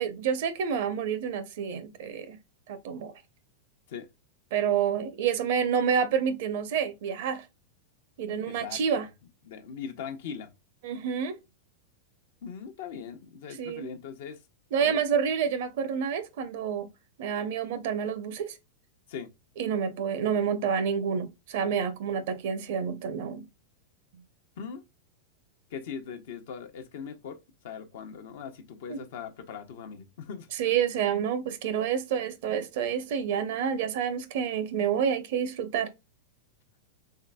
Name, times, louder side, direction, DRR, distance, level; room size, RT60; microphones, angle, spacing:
voice 1, 0.0-2.4 2.7-3.1 4.5-7.4 8.2-9.1 10.8-11.4 13.5-13.9 14.7-16.9 17.2-18.6 19.6-23.5 28.9-29.0 30.5-35.9, right 7 dB, 65° right, 0.6 m, -28 dB
voice 2, 8.5-9.1 9.5-10.5 12.4-14.4 14.8-15.0 19.1-19.3 24.6-24.8 25.7-27.4 27.6-30.5, left 7 dB, 65° left, 0.8 m, -40 dB
3.7 x 3.3 x 2.2 m
hypercardioid pair, 105°, 0 cm